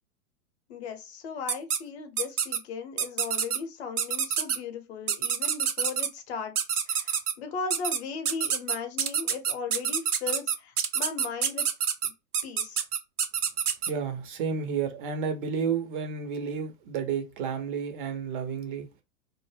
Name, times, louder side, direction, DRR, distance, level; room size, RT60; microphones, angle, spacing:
voice 1, 0.7-11.7 12.0-12.1 12.4-12.8, left 5 dB, 50° left, 0.8 m, -37 dB
sound 1, 1.5-1.8 2.2-2.6 3.0-3.6 4.0-4.6 5.1-6.1 6.6-7.3 7.7-8.0 8.2-13.9, right 8 dB, 90° right, 0.5 m, -27 dB
voice 2, 13.9-18.9, right 6 dB, 35° right, 0.6 m, -31 dB
2.1 x 2.0 x 3.2 m
figure-of-eight pair, 105°, 44 cm